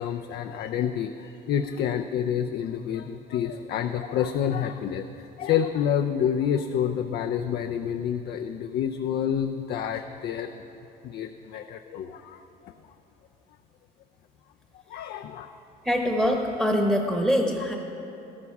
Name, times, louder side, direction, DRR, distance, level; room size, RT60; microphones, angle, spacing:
voice 1, 0.0-10.6 11.0-12.7 14.9-15.5, left 9 dB, 70° left, 6 dB, 0.5 m, -28 dB
voice 2, 15.8-17.8, equal, 5° right, 1 dB, 1.2 m, -24 dB
13.5 x 12.5 x 4.8 m, 2.9 s
cardioid pair, 110°, 17 cm